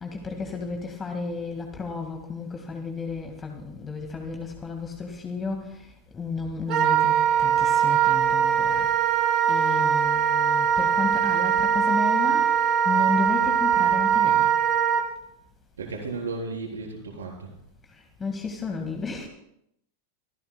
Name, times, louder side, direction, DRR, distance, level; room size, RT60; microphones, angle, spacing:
voice 1, 0.0-5.7 6.1-8.9 9.5-12.5 12.9-14.5 18.2-19.3, left 4 dB, 20° left, 3 dB, 1.8 m, -32 dB
Wind instrument woodwind instrument, 6.7-15.0, right 8 dB, 40° right, 1.9 m, -21 dB
voice 2, 15.8-17.5, right 3 dB, 70° right, 0 dB, 4.1 m, -34 dB
25.5 x 15.5 x 2.3 m, 0.75 s
figure-of-eight pair, 90°, 0 cm